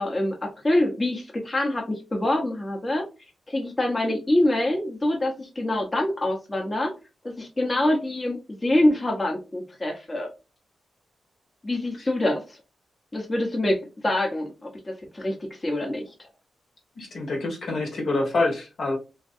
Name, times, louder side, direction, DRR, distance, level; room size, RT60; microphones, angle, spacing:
voice 1, 0.0-3.1 3.5-6.9 7.2-10.3 11.6-12.6 13.1-16.1, left 1 dB, 30° left, 0.9 m, -25 dB
voice 2, 16.9-19.0, left 2 dB, 70° left, 1.3 m, -26 dB
2.9 x 2.6 x 2.5 m
cardioid pair, 55°, 0 cm